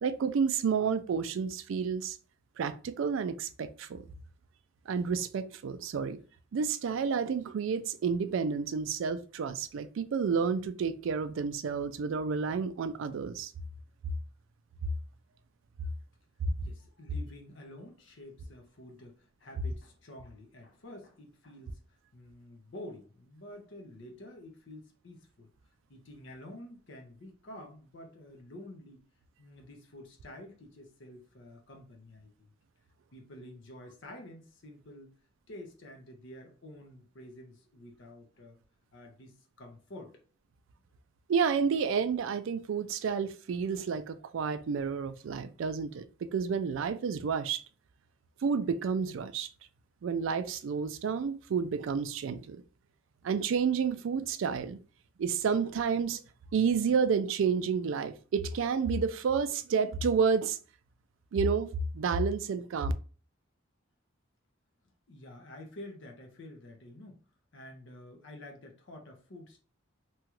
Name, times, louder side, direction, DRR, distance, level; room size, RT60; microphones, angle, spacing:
voice 1, 0.0-2.2 2.6-4.0 4.9-6.2 6.5-13.5 41.3-47.6 48.4-49.5 50.0-52.6 53.2-54.8 55.2-56.2 56.5-60.6 61.3-62.9, right 6 dB, 70° right, 0.3 m, -30 dB
voice 2, 16.6-25.5 25.9-29.0 29.4-32.5 33.1-35.1 35.5-38.6 38.9-40.2 65.1-67.2 67.5-69.6, left 1 dB, 60° left, 0.7 m, -49 dB
2.9 x 2.4 x 2.9 m
head